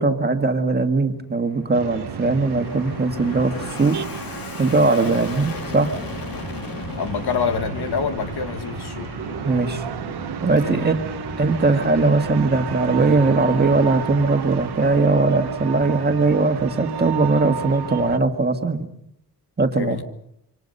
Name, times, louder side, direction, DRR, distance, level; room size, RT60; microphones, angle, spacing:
voice 1, 0.0-4.0 4.6-5.9 9.4-9.8 10.4-11.0 11.4-18.9 19.6-20.0, right 3 dB, 25° right, 1.7 m, -20 dB
Fixed-wing aircraft airplane, 1.2-17.8, left 4 dB, 60° left, 2.6 m, -37 dB
sound 1, 1.7-18.2, right 8 dB, 90° right, 1.2 m, -32 dB
voice 2, 7.0-9.2 10.6-10.9 19.7-20.0, left 6 dB, 85° left, 1.8 m, -27 dB
27.0 x 25.0 x 5.5 m
wide cardioid pair, 175°, 38 cm